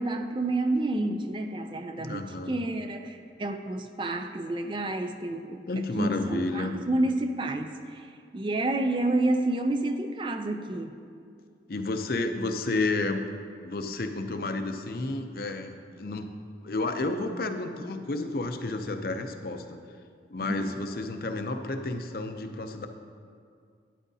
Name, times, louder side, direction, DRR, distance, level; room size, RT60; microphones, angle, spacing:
voice 1, 0.0-11.0 20.4-20.7, right 2 dB, 25° right, 7 dB, 0.4 m, -29 dB
voice 2, 2.0-2.6 5.7-6.8 11.7-13.2 13.6-16.3 16.6-19.8 20.3-22.9, left 2 dB, 55° left, 6 dB, 0.6 m, -31 dB
12.0 x 10.5 x 2.7 m, 2.3 s
head